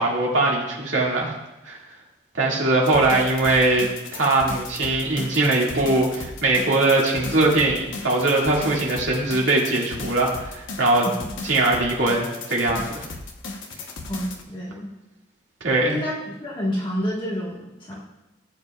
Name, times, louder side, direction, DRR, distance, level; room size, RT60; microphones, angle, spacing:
voice 1, 0.0-1.3 1.6-1.8 2.3-11.1 11.4-13.0 15.6-16.0, right 2 dB, 85° right, -3 dB, 2.1 m, -21 dB
sound 1, 2.8-14.4, left 3 dB, 80° left, 1.1 m, -36 dB
voice 2, 14.1-14.9 15.9-18.0, equal, 25° left, -4 dB, 1.5 m, -29 dB
16.0 x 8.1 x 2.4 m, 0.99 s
head